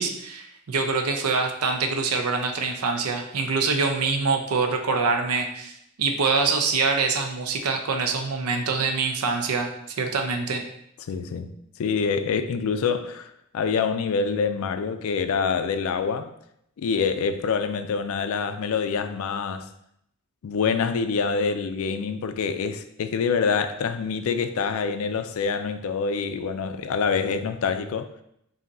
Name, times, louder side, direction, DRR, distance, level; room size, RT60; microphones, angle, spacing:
voice 1, 0.0-9.7 10.0-10.6, right 4 dB, 90° right, 0.6 m, -25 dB
voice 2, 11.1-11.5 11.8-16.3 16.8-19.7 20.4-28.1, left 5 dB, 70° left, 0.3 m, -26 dB
5.1 x 2.7 x 2.6 m
head